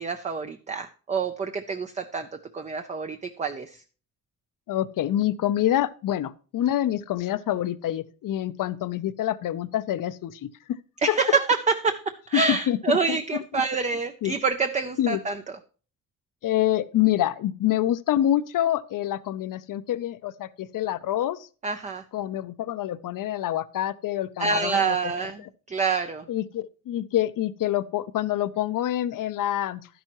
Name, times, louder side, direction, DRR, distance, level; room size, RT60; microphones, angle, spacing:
voice 1, 0.0-2.3 2.5-3.8 11.0-15.4 21.6-22.0 24.4-26.2, right 4 dB, 20° right, 0.5 m, -27 dB
voice 2, 4.7-10.8 11.1-11.2 12.3-13.4 14.2-14.3 15.0-15.2 16.4-21.5 22.1-25.0 26.3-29.9, left 12 dB, 55° left, 0.7 m, -26 dB
12.0 x 10.5 x 3.0 m
cardioid pair, 160°, 39 cm